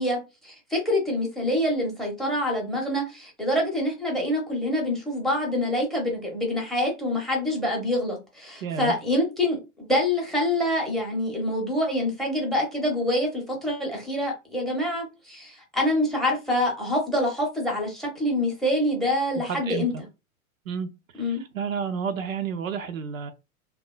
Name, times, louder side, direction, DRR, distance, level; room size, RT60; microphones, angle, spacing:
voice 1, 0.0-19.9 21.2-21.4, left 1 dB, ahead, 0.6 m, -26 dB
voice 2, 8.6-8.9 19.5-20.0 20.7-20.9 21.3-23.3, right 6 dB, 70° right, 0.5 m, -30 dB
2.9 x 2.3 x 2.2 m
figure-of-eight pair, 95°, 42 cm